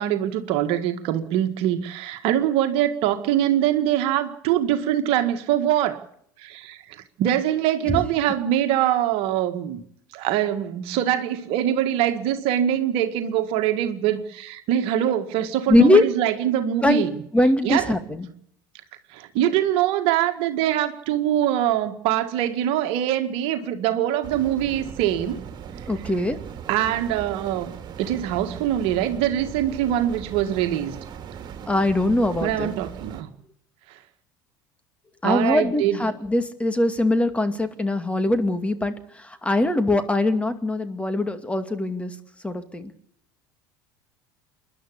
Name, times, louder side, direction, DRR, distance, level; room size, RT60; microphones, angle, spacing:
voice 1, 0.0-6.0 6.4-6.8 7.2-9.8 10.1-17.1 17.6-17.9 19.1-25.4 26.7-31.0 32.4-33.3 35.2-36.0, right 11 dB, 60° right, 1.8 m, -23 dB
voice 2, 15.7-16.0 16.8-17.1 17.3-18.3 25.9-26.4 31.7-32.7 35.2-42.1 42.4-42.9, left 1 dB, 10° left, 2.3 m, -22 dB
sound 1, 24.2-33.2, right 8 dB, 40° right, 2.9 m, -39 dB
27.5 x 11.5 x 8.6 m
hypercardioid pair, 75°, 11 cm